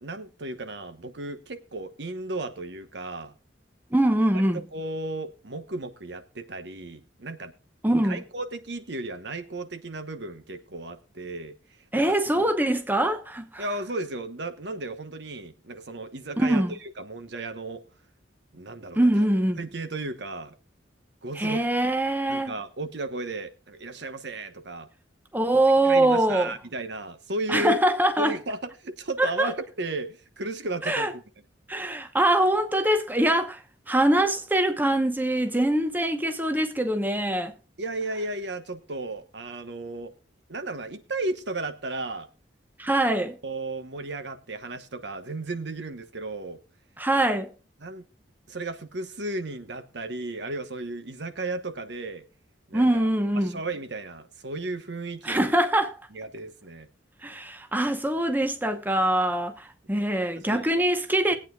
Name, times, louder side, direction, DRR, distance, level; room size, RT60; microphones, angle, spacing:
voice 1, 0.0-3.3 4.5-7.5 8.0-11.6 11.9-12.4 13.6-17.8 18.5-19.1 19.6-20.5 21.2-21.6 22.3-24.9 25.5-27.8 28.2-31.2 37.8-40.1 40.5-42.3 43.4-46.6 47.8-48.0 48.5-52.3 52.7-53.1 53.4-55.5 56.1-56.9 60.4-60.8, right 2 dB, 65° right, 1.1 m, -34 dB
voice 2, 3.9-4.6 7.8-8.2 11.9-13.6 16.4-16.7 19.0-19.6 21.4-22.6 25.3-26.5 27.5-28.4 29.2-29.5 30.9-31.1 31.7-33.6 33.9-37.5 42.8-43.4 47.0-47.5 52.7-53.6 55.2-56.0 57.2-61.3, right 1 dB, 10° right, 0.9 m, -23 dB
20.0 x 8.7 x 2.3 m
head